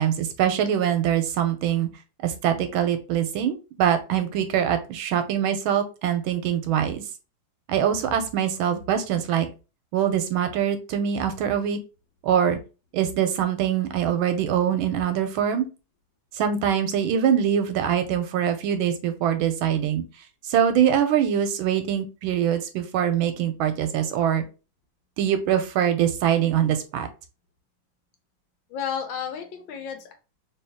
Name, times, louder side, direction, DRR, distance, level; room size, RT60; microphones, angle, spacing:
voice 1, 0.0-1.9 2.2-7.0 7.7-9.5 9.9-11.8 12.2-12.6 12.9-15.7 16.3-20.0 20.5-24.4 25.2-27.1, right 9 dB, 90° right, 8 dB, 1.4 m, -23 dB
voice 2, 28.7-30.1, left 8 dB, 75° left, 4 dB, 1.5 m, -32 dB
3.1 x 3.1 x 3.4 m, 0.31 s
omnidirectional pair, 2.2 m